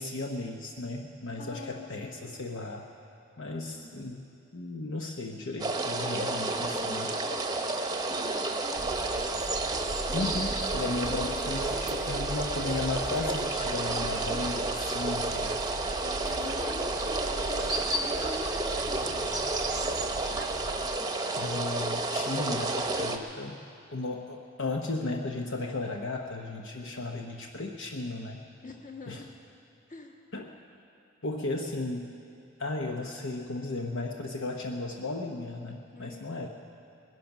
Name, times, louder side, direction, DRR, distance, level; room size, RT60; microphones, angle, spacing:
voice 1, 0.0-2.8 3.4-4.3 4.5-7.1 10.1-15.5 21.3-23.6 23.9-28.5 29.1-29.2 30.3-30.5 31.2-32.1 32.6-36.5, left 2 dB, 65° left, 2 dB, 0.9 m, -35 dB
voice 2, 1.4-2.3 3.7-3.9 6.1-7.7 8.1-9.0 11.0-11.4 16.0-19.2 26.7-27.0 28.6-29.3 29.9-30.2 35.9-36.5, left 2 dB, 40° left, 2 dB, 1.6 m, -44 dB
sound 1, 5.6-23.2, right 2 dB, 20° right, 0.9 m, -31 dB
sound 2, 8.8-21.0, right 2 dB, 55° right, 0.6 m, -40 dB
20.5 x 11.0 x 6.0 m, 2.6 s
head